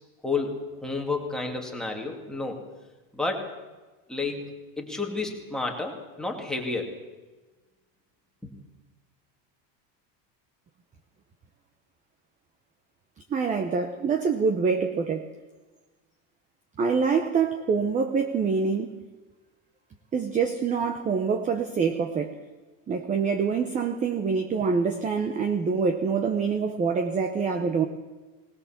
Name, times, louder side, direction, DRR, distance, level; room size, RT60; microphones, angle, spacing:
voice 1, 0.2-2.6 3.1-3.5 4.1-7.0 8.4-8.5, left 3 dB, ahead, 0 dB, 2.3 m, -31 dB
voice 2, 13.3-15.3 16.8-18.9 20.1-22.4 22.9-27.9, right 5 dB, 15° right, 7 dB, 0.9 m, -25 dB
20.5 x 19.5 x 7.3 m, 1.2 s
cardioid pair, 175°, 47 cm